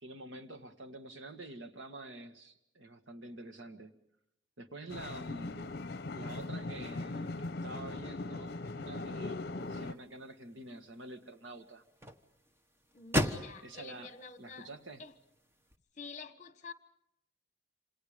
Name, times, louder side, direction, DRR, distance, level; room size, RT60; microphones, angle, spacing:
voice 1, 0.0-3.9 4.6-5.7 6.1-11.8 13.6-14.1 14.4-15.0, right 2 dB, 90° right, 8 dB, 1.9 m, -48 dB
sound 1, 4.9-9.9, left 2 dB, 55° left, 0.8 m, -40 dB
sound 2, 9.6-15.8, equal, 15° right, 1.3 m, -40 dB
voice 2, 12.9-14.7 15.0-15.1 16.0-16.7, left 4 dB, 40° left, 11 dB, 1.3 m, -48 dB
27.5 x 27.5 x 5.2 m, 0.81 s
head